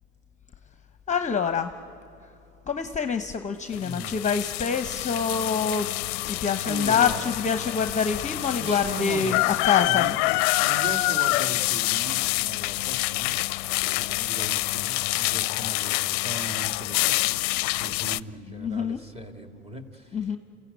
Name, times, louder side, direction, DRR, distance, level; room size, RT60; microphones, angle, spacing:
voice 1, 1.1-1.7 2.7-5.9 6.2-10.0 18.6-19.0 20.1-20.4, left 6 dB, 20° left, 9 dB, 0.9 m, -26 dB
sound 1, 3.7-18.2, left 23 dB, 60° left, 0.5 m, -27 dB
voice 2, 3.7-4.2 6.6-7.3 8.6-10.2 10.6-13.3 13.8-20.4, right 2 dB, 15° right, 5 dB, 2.3 m, -38 dB
29.0 x 15.0 x 9.4 m, 2.7 s
hypercardioid pair, 90°, 36 cm